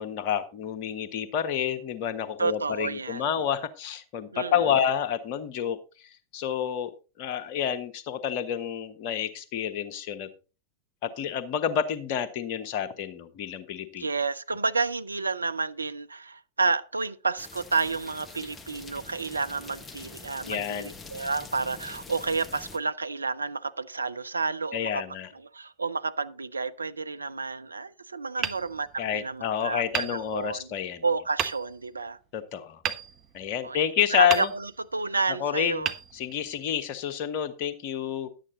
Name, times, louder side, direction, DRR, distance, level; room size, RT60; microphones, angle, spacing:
voice 1, 0.0-5.8 6.3-6.9 7.2-10.3 11.0-14.1 20.5-21.0 24.7-25.3 29.0-31.0 32.3-32.8 33.3-34.5 35.4-35.9 36.1-38.3, left 9 dB, 45° left, 1.2 m, -29 dB
voice 2, 2.4-3.3 4.3-4.8 14.0-25.0 25.3-30.7 31.0-32.2 33.6-35.9, right 4 dB, 80° right, 0.5 m, -30 dB
sound 1, 17.4-22.8, left 3 dB, 15° left, 1.2 m, -45 dB
Hammer, 28.4-29.4 29.9-30.8 31.4-32.0 32.8-33.8 34.3-35.0 35.8-36.8, right 9 dB, 30° right, 0.9 m, -34 dB
11.0 x 9.0 x 4.0 m
figure-of-eight pair, 90°, 0 cm